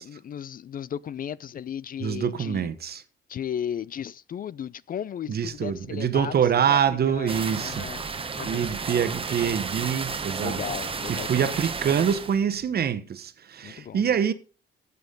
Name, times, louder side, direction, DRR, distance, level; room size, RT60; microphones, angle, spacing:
voice 1, 0.0-2.7 3.3-6.3 6.7-7.3 7.6-8.0 8.3-8.8 10.4-11.5 13.6-14.0, left 9 dB, 45° left, 0.5 m, -35 dB
voice 2, 2.0-3.0 5.3-7.9 8.4-10.6 11.1-14.3, right 8 dB, 50° right, 1.1 m, -25 dB
sound 1, 5.4-12.8, left 2 dB, 90° left, 3.0 m, -55 dB
sound 2, 7.3-12.4, right 5 dB, 25° right, 1.0 m, -32 dB
14.0 x 8.3 x 3.8 m
cardioid pair, 90°, 20 cm